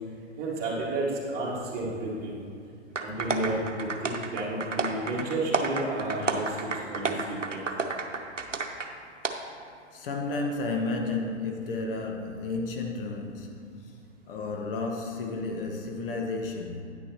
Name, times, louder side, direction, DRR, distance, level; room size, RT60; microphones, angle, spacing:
voice 1, 0.4-2.4 3.0-7.6, right 2 dB, 25° right, 2.0 m, -32 dB
sound 1, 2.9-8.9 9.2-9.3, right 4 dB, 90° right, 0.8 m, -31 dB
voice 2, 9.9-14.0 14.3-16.8, left 3 dB, 50° left, 1.0 m, -32 dB
9.8 x 9.5 x 3.0 m
figure-of-eight pair, 110°, 36 cm